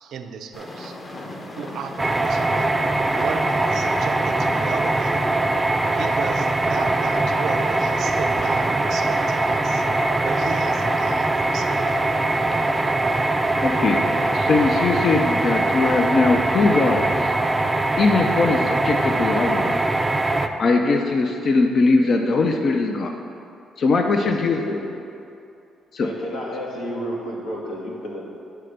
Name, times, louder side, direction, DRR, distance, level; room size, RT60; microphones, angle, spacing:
voice 1, 0.0-1.0 1.6-2.7 3.2-5.3 5.9-9.9 10.2-11.8, right 6 dB, 75° right, 6 dB, 0.5 m, -34 dB
sound 1, 0.5-16.1, left 1 dB, 30° left, 0.9 m, -37 dB
sound 2, 2.0-20.5, right 2 dB, 15° right, 0.4 m, -22 dB
voice 2, 13.6-14.0 14.3-17.1 18.0-19.8 20.6-23.1 23.8-24.6 25.9-26.1, left 3 dB, 55° left, 3 dB, 0.5 m, -20 dB
voice 3, 24.2-24.9 26.0-28.2, equal, 80° left, -3 dB, 1.5 m, -31 dB
9.1 x 3.3 x 6.5 m, 2.6 s
cardioid pair, 90°, 0 cm